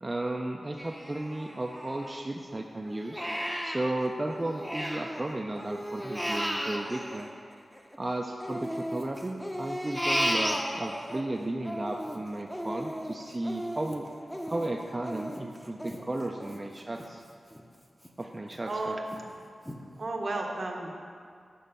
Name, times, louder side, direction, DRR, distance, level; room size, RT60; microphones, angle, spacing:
voice 1, 0.0-3.3 3.6-7.3 8.0-14.1 14.5-17.2 18.2-19.0, right 1 dB, 30° right, 1 dB, 0.4 m, -34 dB
Crying sobbing, 0.8-2.4 2.8-5.2 5.5-8.0 8.4-11.2 11.6-17.1 17.5-17.6 18.0-18.6 19.1-19.2 19.7-19.8, equal, ahead, 0.7 m, -34 dB
voice 2, 18.7-19.0 19.9-21.0, right 2 dB, 65° right, 1 dB, 0.8 m, -33 dB
6.9 x 3.1 x 5.5 m, 2.2 s
cardioid pair, 45°, 0 cm